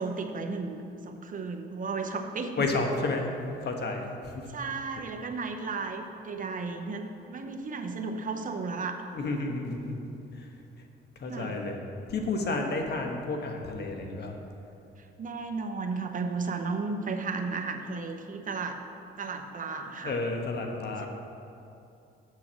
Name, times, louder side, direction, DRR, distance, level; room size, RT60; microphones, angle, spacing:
voice 1, 0.0-2.7 4.5-9.1 11.2-11.6 15.0-18.8 19.2-20.2, right 4 dB, 40° right, 5 dB, 0.9 m, -34 dB
voice 2, 2.6-3.3 3.6-4.5 9.1-10.0 10.3-10.5 11.2-11.8 12.1-14.4 20.0-21.1, left 3 dB, 55° left, 3 dB, 1.2 m, -31 dB
7.5 x 6.3 x 6.2 m, 2.7 s
cardioid pair, 90°, 20 cm